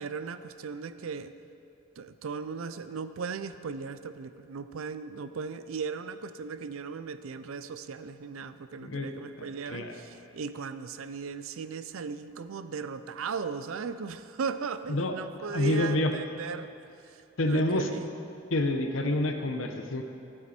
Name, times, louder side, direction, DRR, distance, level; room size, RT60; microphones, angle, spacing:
voice 1, 0.0-1.3 2.0-16.7 17.1-18.1, right 5 dB, 85° right, 12 dB, 0.5 m, -37 dB
voice 2, 9.4-10.0 14.9-15.2 15.5-16.1 17.4-17.9 18.5-20.0, left 1 dB, 70° left, 5 dB, 0.9 m, -28 dB
14.5 x 7.6 x 4.3 m, 2.6 s
head